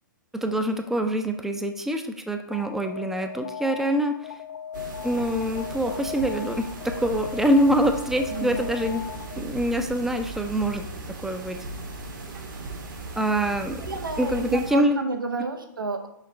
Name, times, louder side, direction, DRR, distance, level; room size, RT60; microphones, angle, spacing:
voice 1, 0.3-4.4 5.0-9.1 9.4-10.9 11.2-11.6 13.2-13.8 14.2-15.0, equal, 5° right, 6 dB, 0.5 m, -25 dB
Alarm, 2.5-9.6, left 9 dB, 60° left, 0.4 m, -38 dB
sound 1, 4.7-14.7, right 3 dB, 65° right, 1.6 m, -37 dB
voice 2, 13.8-16.1, right 3 dB, 80° right, 5 dB, 0.9 m, -31 dB
6.4 x 5.0 x 3.3 m, 0.79 s
figure-of-eight pair, 115°, 11 cm